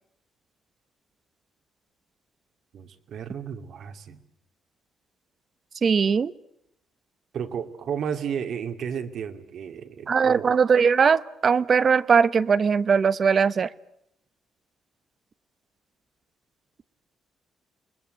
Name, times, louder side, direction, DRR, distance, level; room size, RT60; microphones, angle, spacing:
voice 1, 2.7-4.2 7.3-10.6, right 7 dB, 65° right, 7 dB, 2.5 m, -33 dB
voice 2, 5.8-6.3 10.1-13.7, right 6 dB, 45° right, 16 dB, 0.9 m, -20 dB
29.0 x 21.0 x 8.0 m, 0.78 s
cardioid pair, 90°, 0 cm